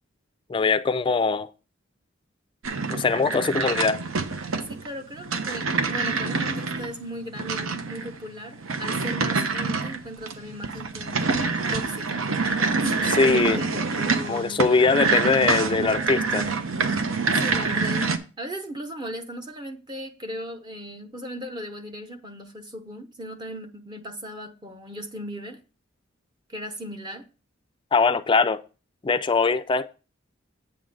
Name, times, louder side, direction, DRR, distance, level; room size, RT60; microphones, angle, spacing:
voice 1, 0.5-1.5 2.9-4.0 13.2-13.6 14.3-16.5 27.9-28.6 29.0-29.9, left 4 dB, 25° left, 0.4 m, -21 dB
sound 1, 2.6-18.2, right 4 dB, 90° right, 0.8 m, -26 dB
voice 2, 4.6-11.4 11.7-12.9 13.2-14.8 17.4-25.6 26.5-27.3, equal, 20° right, 0.6 m, -37 dB
8.5 x 3.7 x 6.3 m
head